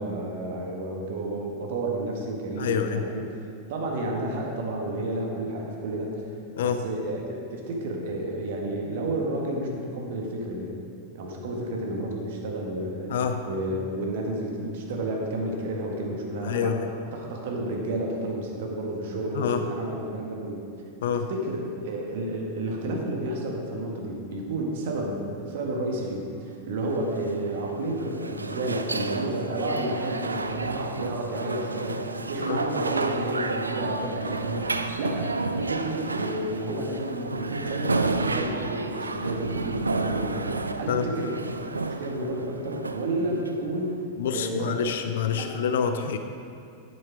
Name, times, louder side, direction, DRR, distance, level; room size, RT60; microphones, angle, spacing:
voice 1, 0.0-6.2 6.6-10.7 11.1-13.1 13.4-20.6 21.1-35.3 35.5-41.5 42.0-44.0 44.3-44.9 45.3-45.5 45.8-45.9, right 1 dB, 55° right, 0 dB, 1.6 m, -31 dB
voice 2, 2.6-3.1 6.6-6.8 13.1-13.4 16.4-16.8 19.3-19.6 21.0-21.3 32.5-32.6 40.9-41.1 44.2-46.2, left 7 dB, 60° left, 8 dB, 0.5 m, -27 dB
sound 1, 26.9-43.9, right 3 dB, 80° right, 0.4 m, -31 dB
10.0 x 8.0 x 4.8 m, 2.5 s
figure-of-eight pair, 90°, 0 cm